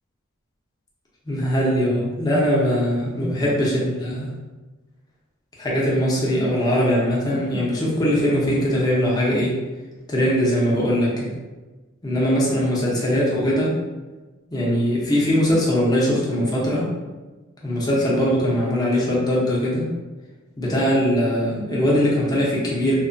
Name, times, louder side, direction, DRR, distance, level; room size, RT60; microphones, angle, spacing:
voice 1, 1.3-4.3 5.6-9.5 10.1-11.3 12.0-13.8 14.5-16.9 17.6-19.9 20.6-22.9, equal, 20° left, -5 dB, 0.6 m, -21 dB
2.8 x 2.1 x 2.5 m, 1.2 s
head